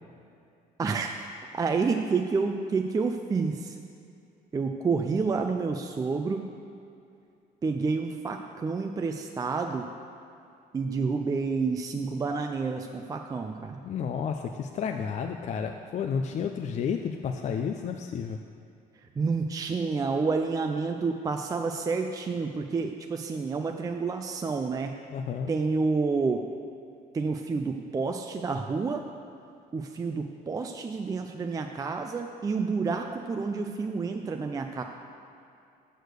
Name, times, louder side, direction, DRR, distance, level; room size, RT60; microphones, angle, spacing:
voice 1, 0.8-3.8 4.5-6.5 7.6-9.9 10.7-13.8 19.0-24.9 25.5-26.5 27.1-29.0 29.7-34.8, right 4 dB, 20° right, 4 dB, 0.4 m, -29 dB
voice 2, 13.8-18.4 25.1-25.5, left 6 dB, 45° left, 5 dB, 0.4 m, -31 dB
6.5 x 6.4 x 6.5 m, 2.5 s
cardioid pair, 110°, 17 cm